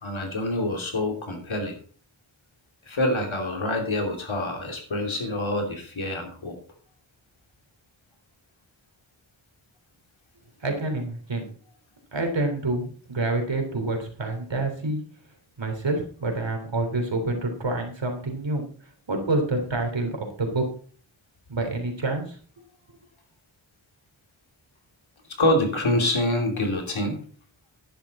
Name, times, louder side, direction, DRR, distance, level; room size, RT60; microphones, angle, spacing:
voice 1, 0.0-1.7 2.9-6.5 25.4-27.2, left 1 dB, 90° left, 3 dB, 3.0 m, -26 dB
voice 2, 10.6-11.4 12.1-15.0 15.6-18.6 19.1-20.6 21.5-22.4, right 2 dB, 70° right, 4 dB, 3.3 m, -27 dB
11.0 x 10.5 x 4.2 m, 0.43 s
wide cardioid pair, 85°, 46 cm